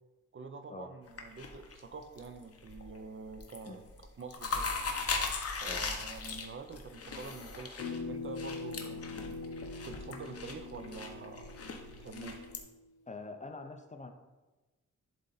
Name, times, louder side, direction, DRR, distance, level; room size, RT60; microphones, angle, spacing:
voice 1, 0.3-4.7 5.6-9.4 9.8-12.5, right 4 dB, 40° right, 8 dB, 0.5 m, -47 dB
sound 1, 1.1-2.3 2.6-3.0 3.3-3.7 4.0-12.6, left 4 dB, 50° left, 0.9 m, -38 dB
sound 2, 7.8-12.8, left 4 dB, 75° left, 0.8 m, -43 dB
voice 2, 13.1-14.1, left 3 dB, 25° left, 6 dB, 0.5 m, -44 dB
11.0 x 3.9 x 4.0 m, 1.1 s
wide cardioid pair, 165°, 31 cm